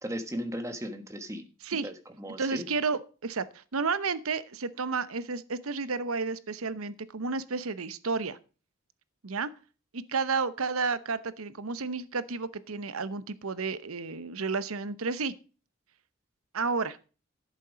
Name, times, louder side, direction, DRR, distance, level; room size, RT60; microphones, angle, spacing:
voice 1, 0.0-1.5 1.8-2.7, equal, 15° right, 8 dB, 1.3 m, -36 dB
voice 2, 2.3-8.4 9.2-9.5 9.9-15.3 16.5-17.0, right 4 dB, 90° right, 15 dB, 0.9 m, -31 dB
11.5 x 8.4 x 5.1 m, 0.36 s
head